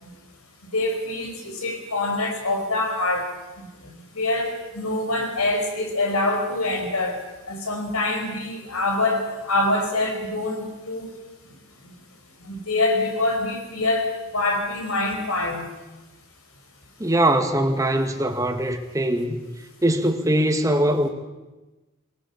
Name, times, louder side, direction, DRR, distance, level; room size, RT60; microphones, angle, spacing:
voice 1, 0.6-3.3 3.9-7.2 7.5-11.1 12.4-15.7, left 2 dB, 90° left, 3 dB, 5.2 m, -25 dB
voice 2, 17.0-19.4 19.8-21.1, right 1 dB, 15° right, 5 dB, 1.8 m, -21 dB
22.5 x 17.0 x 8.4 m, 1.1 s
head